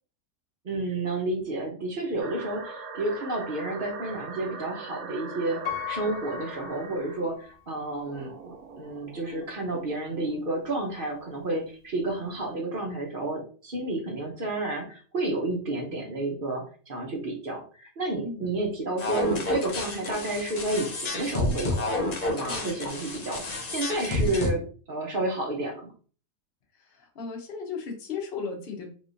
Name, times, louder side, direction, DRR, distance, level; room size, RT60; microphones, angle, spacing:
voice 1, 0.6-5.6 5.9-21.9 22.3-25.9, right 2 dB, 50° right, 0 dB, 0.7 m, -31 dB
sound 1, 2.2-7.2 8.1-10.5, right 4 dB, 65° right, 1.0 m, -41 dB
Piano, 5.6-7.6 8.2-8.3, left 12 dB, 80° left, 1.4 m, -37 dB
sound 2, 19.0-24.5, left 2 dB, 60° left, 0.4 m, -30 dB
voice 2, 22.5-22.8 26.8-28.9, left 5 dB, 45° left, 2 dB, 0.9 m, -36 dB
3.5 x 3.0 x 2.6 m, 0.40 s
omnidirectional pair, 1.8 m